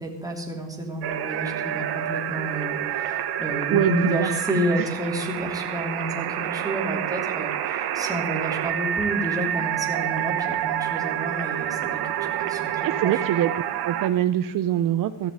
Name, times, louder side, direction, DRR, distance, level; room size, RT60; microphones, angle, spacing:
voice 1, 0.0-13.2, right 1 dB, 10° right, 0 dB, 3.3 m, -30 dB
sound 1, 1.0-14.1, right 11 dB, 75° right, 1.4 m, -28 dB
voice 2, 3.7-4.3 4.8-4.9 12.8-13.5 13.8-15.3, right 11 dB, 55° right, 10 dB, 0.8 m, -23 dB
15.5 x 6.9 x 8.8 m, 1.0 s
cardioid pair, 125°, 39 cm